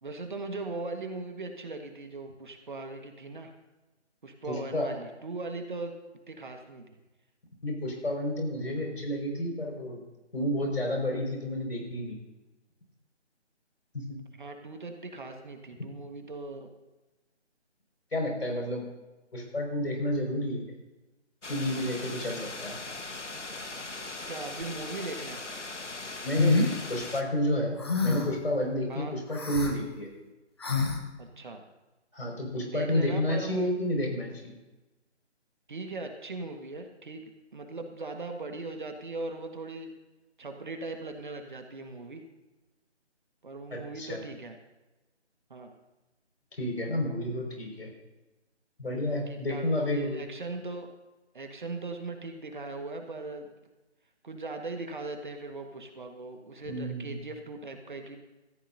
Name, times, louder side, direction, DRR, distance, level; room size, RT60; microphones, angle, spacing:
voice 1, 0.0-3.5 4.2-5.9 6.3-7.0 14.4-16.7 24.3-25.4 28.9-29.1 31.2-31.6 32.6-33.8 35.7-39.9 40.4-42.2 43.4-44.6 45.5-45.7 49.3-50.9 51.3-53.5 54.2-58.2, right 3 dB, 45° right, 5 dB, 1.5 m, -39 dB
voice 2, 4.5-4.9 7.6-10.0 10.3-12.2 13.9-14.2 18.1-18.8 19.3-20.6 21.5-22.8 26.2-26.6 26.9-30.1 32.1-34.5 43.7-44.2 46.6-47.9 48.8-50.2 56.7-57.2, left 1 dB, 60° left, 0 dB, 5.4 m, -30 dB
sound 1, 21.4-27.2, left 3 dB, 85° left, 1.4 m, -39 dB
sound 2, 26.4-26.7 27.8-28.4 29.3-29.7 30.6-31.0, left 3 dB, 20° left, 0.9 m, -26 dB
17.5 x 14.5 x 2.7 m, 1.1 s
figure-of-eight pair, 160°, 35 cm